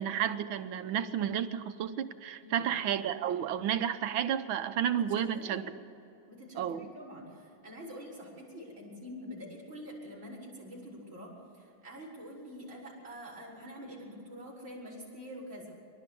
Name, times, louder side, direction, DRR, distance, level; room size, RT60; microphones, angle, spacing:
voice 1, 0.0-5.6 6.6-6.9, right 9 dB, 85° right, 10 dB, 1.7 m, -31 dB
voice 2, 5.1-5.7 6.3-15.7, equal, 30° right, -8 dB, 6.6 m, -46 dB
26.0 x 12.5 x 8.4 m, 2.8 s
omnidirectional pair, 2.2 m